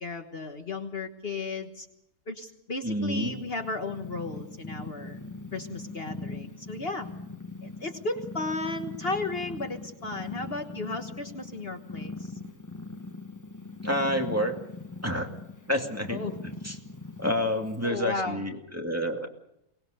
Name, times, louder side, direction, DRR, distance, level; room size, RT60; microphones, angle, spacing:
voice 1, 0.0-1.9 2.3-5.2 5.5-7.1 7.6-12.3 16.1-16.4 17.8-18.4, left 3 dB, 50° left, 6 dB, 1.6 m, -34 dB
voice 2, 2.8-3.4 13.8-14.6 15.0-15.3 15.7-16.8 17.2-19.3, equal, 10° right, 2 dB, 2.3 m, -29 dB
Purr, 3.1-17.9, left 2 dB, 15° left, 1.2 m, -41 dB
24.0 x 19.5 x 6.7 m, 0.79 s
omnidirectional pair, 1.4 m